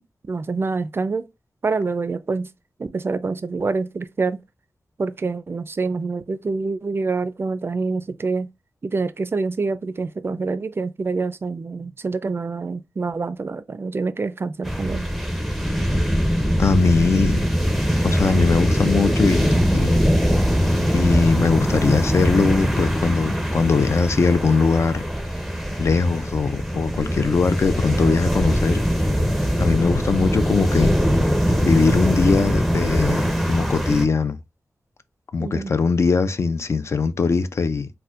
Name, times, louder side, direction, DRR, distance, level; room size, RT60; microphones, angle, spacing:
voice 1, 0.2-1.3 1.6-2.5 2.8-4.4 5.0-8.5 8.8-15.1 35.4-35.7, right 4 dB, 45° right, 0.4 m, -26 dB
sound 1, 14.6-34.1, equal, ahead, 0.6 m, -22 dB
voice 2, 16.6-17.4 18.0-20.1 20.9-25.0 25.8-28.8 29.6-31.0 31.6-34.4 35.3-37.9, left 4 dB, 55° left, 0.4 m, -21 dB
4.1 x 2.1 x 2.4 m
wide cardioid pair, 70°, 6 cm